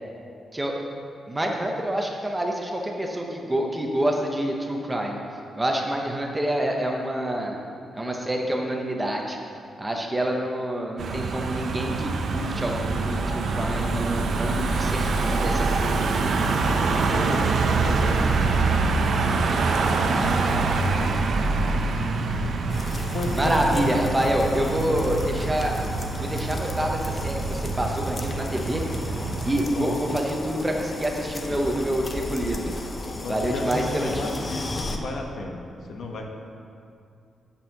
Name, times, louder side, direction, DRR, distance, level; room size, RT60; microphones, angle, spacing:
voice 1, 1.3-5.2 5.6-7.6 7.9-9.4 9.8-16.0 23.3-25.8 26.1-28.8 29.4-32.7 33.3-34.3, right 1 dB, 10° right, 1 dB, 0.7 m, -27 dB
Car passing by / Engine, 11.0-29.7, right 3 dB, 55° right, 0.6 m, -25 dB
voice 2, 17.1-18.7 19.6-20.5 23.1-23.9 29.7-30.2 33.2-36.2, left 2 dB, 60° left, 2 dB, 1.0 m, -33 dB
sound 1, 22.7-35.0, left 2 dB, 25° left, 0.6 m, -35 dB
8.6 x 5.5 x 6.5 m, 2.4 s
wide cardioid pair, 180°, 0 cm